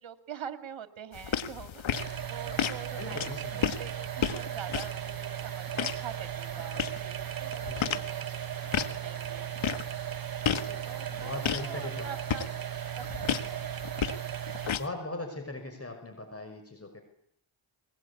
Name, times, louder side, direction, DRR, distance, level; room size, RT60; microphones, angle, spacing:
voice 1, 0.0-3.2 3.6-7.1 7.4-8.3 8.9-9.5 10.8-12.5 13.0-13.9, right 8 dB, 70° right, 9 dB, 2.5 m, -44 dB
sound 1, 1.1-14.9, left 8 dB, 70° left, 1.7 m, -35 dB
sound 2, 1.9-14.7, right 11 dB, 45° right, 0.9 m, -37 dB
voice 2, 3.0-3.7 7.7-8.1 10.5-12.1 12.4-12.5 14.8-17.0, left 2 dB, 30° left, 6 dB, 5.9 m, -40 dB
22.0 x 20.5 x 8.6 m, 0.73 s
cardioid pair, 75°, 49 cm